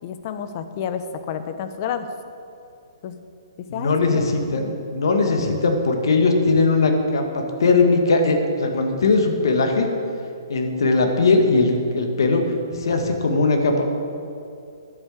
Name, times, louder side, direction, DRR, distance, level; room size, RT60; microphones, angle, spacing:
voice 1, 0.0-2.1 3.0-3.2 3.6-4.2 4.5-4.7, left 8 dB, 45° left, 9 dB, 1.0 m, -30 dB
voice 2, 3.7-9.9 10.5-12.4 12.7-13.9, left 3 dB, 70° left, 4 dB, 1.9 m, -19 dB
10.5 x 8.0 x 8.5 m, 2.5 s
hypercardioid pair, 130°, 2 cm